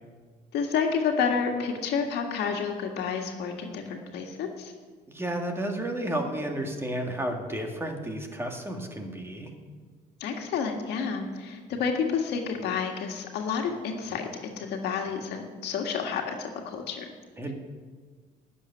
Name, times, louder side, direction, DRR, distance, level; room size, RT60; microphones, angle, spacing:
voice 1, 0.5-4.7 10.2-17.1, left 6 dB, 80° left, 3 dB, 1.8 m, -30 dB
voice 2, 5.1-9.5 17.4-17.5, right 1 dB, 15° right, 3 dB, 1.9 m, -32 dB
11.5 x 7.1 x 9.8 m, 1.5 s
cardioid pair, 110°, 17 cm